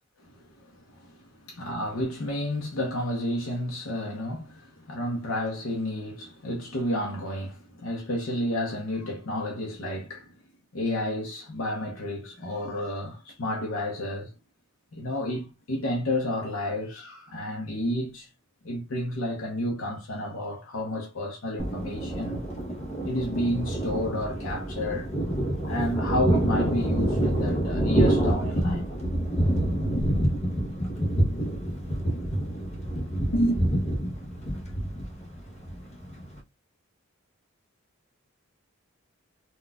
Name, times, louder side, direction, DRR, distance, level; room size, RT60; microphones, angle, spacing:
voice 1, 0.4-1.2 1.6-10.3 10.7-14.3 14.9-18.3 18.6-22.4 23.0-25.1 25.7-28.8 32.0-32.1 33.3-33.6, left 1 dB, 80° left, 0.7 m, -31 dB
Thunder, 21.6-36.4, right 1 dB, 35° left, 0.8 m, -27 dB
3.9 x 2.3 x 2.2 m
head